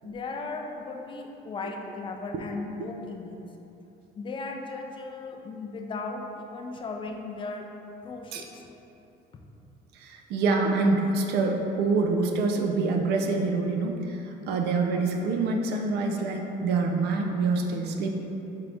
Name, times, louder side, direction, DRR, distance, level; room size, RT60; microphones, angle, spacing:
voice 1, 0.0-3.5 4.2-7.7 8.0-8.6 9.3-9.4, left 3 dB, 30° left, 3 dB, 0.4 m, -36 dB
voice 2, 10.0-14.2 14.5-18.1, right 3 dB, 75° right, 2 dB, 0.4 m, -26 dB
4.5 x 2.5 x 3.4 m, 3.0 s
cardioid pair, 110°, 17 cm